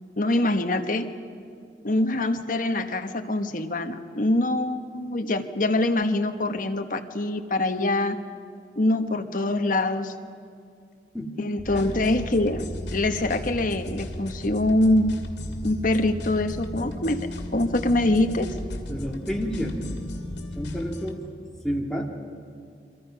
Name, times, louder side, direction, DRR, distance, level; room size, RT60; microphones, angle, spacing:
voice 1, 0.2-1.1 1.8-8.2 8.7-10.1 11.4-15.1 15.6-17.2 17.5-18.5, left 1 dB, 50° left, 6 dB, 1.3 m, -24 dB
sound 1, 11.6-21.0, left 1 dB, 70° left, 2.6 m, -36 dB
sound 2, 11.8-21.1, left 2 dB, 90° left, 2.5 m, -44 dB
voice 2, 18.9-19.9 20.5-21.2 21.6-22.1, equal, 5° left, -1 dB, 2.2 m, -29 dB
29.5 x 24.5 x 5.7 m, 2.3 s
head